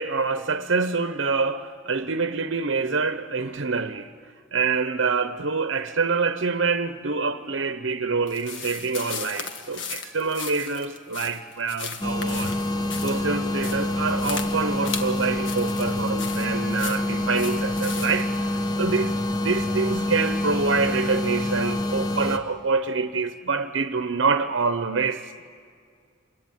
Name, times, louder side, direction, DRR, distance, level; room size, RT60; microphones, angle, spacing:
voice 1, 0.0-4.1 4.5-12.6 13.0-18.5 18.8-19.2 19.4-25.4, right 4 dB, 70° right, 0.9 m, -26 dB
sound 1, 8.3-18.4, left 6 dB, 65° left, 1.6 m, -37 dB
sound 2, 12.0-22.4, left 1 dB, 20° left, 1.1 m, -26 dB
27.5 x 22.0 x 9.5 m
head